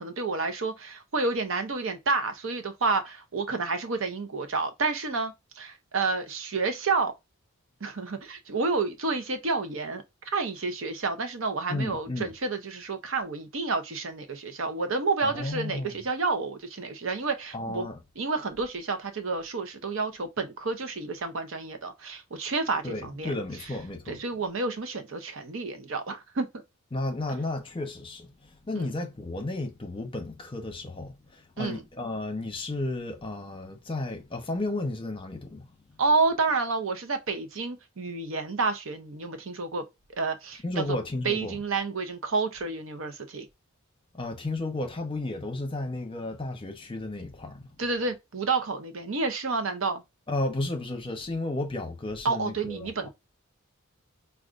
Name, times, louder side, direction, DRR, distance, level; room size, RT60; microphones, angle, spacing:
voice 1, 0.0-7.1 7.8-10.0 10.3-17.9 18.2-23.3 24.1-26.5 28.7-28.9 31.6-31.8 36.0-39.8 40.2-41.0 41.2-43.5 47.8-50.0 52.2-53.1, right 3 dB, 65° right, 0.7 m, -29 dB
voice 2, 11.7-12.3 15.2-16.0 17.5-18.0 22.8-24.2 26.9-28.3 28.7-35.7 40.6-41.6 44.1-47.7 50.3-53.1, left 2 dB, 25° left, 0.8 m, -33 dB
4.8 x 2.3 x 2.5 m
head